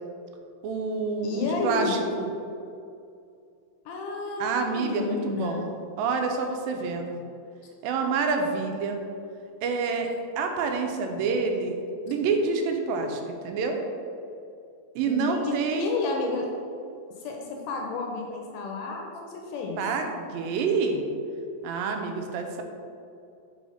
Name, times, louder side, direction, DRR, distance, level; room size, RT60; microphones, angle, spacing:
voice 1, 0.6-2.3 4.4-5.7 6.0-7.2 7.8-9.0 9.6-10.1 10.4-11.7 12.1-13.8 15.0-15.9 19.8-21.0 21.6-22.6, right 4 dB, 90° right, 4 dB, 2.4 m, -27 dB
voice 2, 1.2-2.0 3.9-5.6 15.1-16.5 17.2-19.8, left 3 dB, 80° left, 1 dB, 2.0 m, -31 dB
5.5 x 4.0 x 4.9 m, 2.5 s
omnidirectional pair, 4.0 m